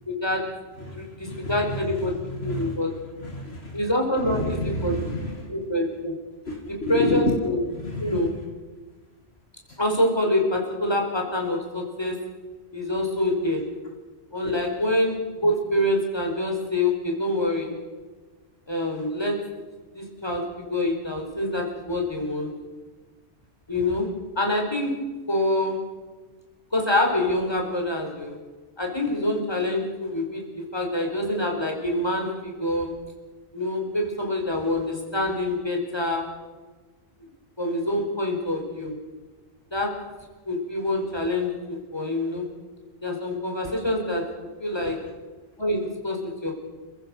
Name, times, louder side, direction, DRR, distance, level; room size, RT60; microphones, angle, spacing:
voice 1, 0.1-0.4 0.9-2.9 3.7-4.9 5.5-6.1 6.9-7.6 8.0-8.3 9.8-12.1 12.7-13.6 14.3-17.7 18.7-19.4 19.9-22.5 23.7-24.1 24.4-24.9 25.3-25.8 26.7-28.4 28.8-32.9 33.5-36.3 37.6-38.9 39.7-39.9 40.5-42.5 43.0-44.2 44.6-44.9 45.6-46.5, left 1 dB, 20° left, 1 dB, 5.0 m, -26 dB
voice 2, 0.8-3.8 4.2-5.5 6.5-7.4 7.7-8.4 9.7-9.8 44.8-45.0, left 1 dB, 60° left, 1 dB, 2.5 m, -30 dB
29.0 x 16.0 x 6.4 m, 1.3 s
omnidirectional pair, 1.2 m